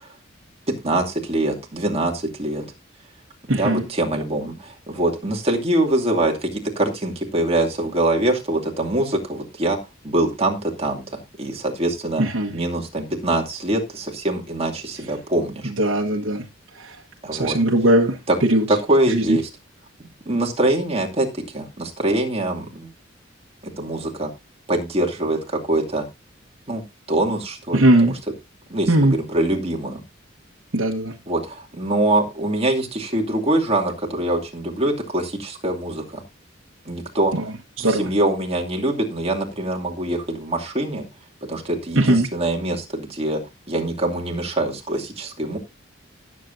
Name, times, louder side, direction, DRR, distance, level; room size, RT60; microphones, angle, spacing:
voice 1, 0.7-2.7 3.5-9.8 10.0-12.2 12.5-15.7 17.2-17.6 18.3-18.4 18.7-19.5 20.3-22.9 23.8-24.3 24.7-26.0 26.7-26.8 27.1-28.1 28.7-30.0 31.3-36.2 36.9-37.3 37.8-41.0 41.4-43.4 43.7-45.6, right 1 dB, 30° right, 2.5 m, -23 dB
voice 2, 3.5-3.8 12.2-12.5 15.8-16.4 16.8-17.0 17.3-18.6 19.1-19.4 27.7-28.1 28.9-29.1 30.7-31.1 37.3-38.1 41.9-42.3, right 1 dB, 75° right, 1.4 m, -19 dB
18.0 x 7.6 x 2.7 m
head